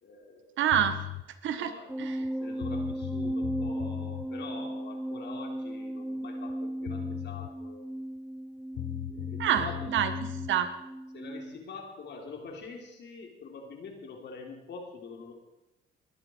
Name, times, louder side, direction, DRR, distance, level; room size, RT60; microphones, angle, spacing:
voice 1, 0.0-0.7 1.5-7.9 9.1-9.9 11.1-15.3, left 4 dB, 60° left, 2 dB, 3.7 m, -45 dB
voice 2, 0.6-1.0 1.4-1.7 2.0-2.2 9.4-10.7, right 9 dB, 75° right, 10 dB, 1.5 m, -27 dB
sound 1, 0.7-1.2 2.2-2.3 2.6-4.3 6.5-6.6 6.8-7.5 8.7-10.5, left 17 dB, 80° left, 0.7 m, -37 dB
sound 2, 1.9-11.6, right 1 dB, 5° right, 0.4 m, -36 dB
20.5 x 11.0 x 4.7 m, 0.93 s
cardioid pair, 90°, 20 cm